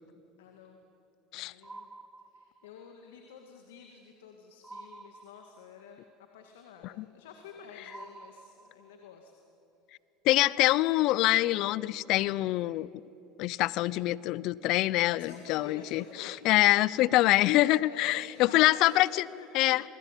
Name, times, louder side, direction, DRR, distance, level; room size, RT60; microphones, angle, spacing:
voice 1, 0.4-0.8 1.3-1.9 2.3-6.0 6.3-9.3 15.1-16.7 17.1-17.3 17.8-19.8, left 6 dB, 90° left, 4 dB, 2.1 m, -50 dB
sound 1, 1.6-2.9 4.6-5.9 7.9-9.1, right 3 dB, 15° right, 1.4 m, -49 dB
voice 2, 10.2-12.9 13.4-19.3 19.5-19.8, left 17 dB, 60° left, 21 dB, 0.7 m, -25 dB
27.5 x 19.5 x 9.2 m, 2.8 s
supercardioid pair, 100°, 0 cm